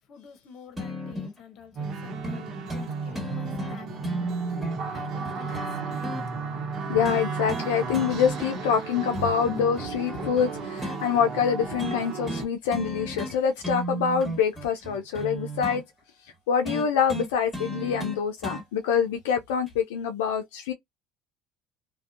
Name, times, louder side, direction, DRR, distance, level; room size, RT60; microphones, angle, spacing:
voice 1, 0.1-4.3 4.9-5.6 5.9-6.2, left 7 dB, 55° left, 0.8 m, -49 dB
sound 1, 0.8-1.4 2.2-2.4 2.7-2.9 3.1-6.2 7.0-7.7 7.9-8.8 9.1-11.0 11.8-12.0 12.3-12.5 12.7-13.4 13.6-15.8 16.6-18.6 19.7-19.8, right 1 dB, 5° right, 1.5 m, -34 dB
sound 2, 1.8-12.5, right 5 dB, 55° right, 0.9 m, -34 dB
voice 2, 6.9-15.8 16.5-20.7, left 7 dB, 90° left, 0.5 m, -25 dB
2.5 x 2.2 x 2.4 m
supercardioid pair, 90°, 0 cm